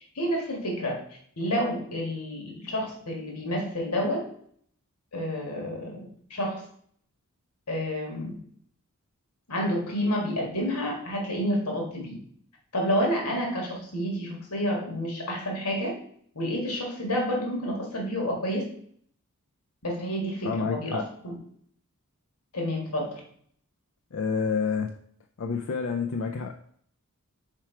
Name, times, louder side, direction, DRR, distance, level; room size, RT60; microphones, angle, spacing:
voice 1, 0.2-1.0 1.4-4.2 5.1-6.6 7.7-8.3 9.5-12.2 12.7-16.0 16.3-18.6 19.8-21.3 22.5-23.2, equal, 90° left, -1 dB, 1.8 m, -29 dB
voice 2, 20.4-21.0 24.1-24.9 25.4-26.5, left 5 dB, 60° left, 4 dB, 0.4 m, -28 dB
4.9 x 4.5 x 4.4 m, 0.63 s
head